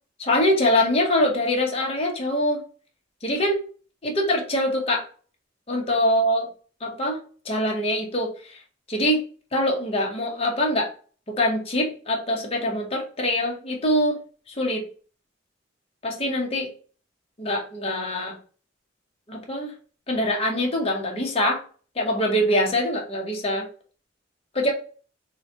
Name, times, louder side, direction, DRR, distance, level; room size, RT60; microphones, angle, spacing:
voice 1, 0.2-2.6 3.2-3.6 4.0-5.0 5.7-6.5 6.8-7.2 7.4-8.6 8.9-9.2 9.5-10.9 11.3-14.2 14.5-14.9 16.0-16.7 17.4-18.4 19.3-19.7 20.1-21.6 21.9-23.7 24.5-24.7, left 1 dB, 30° left, 0 dB, 0.9 m, -24 dB
3.8 x 2.2 x 2.8 m, 0.40 s
head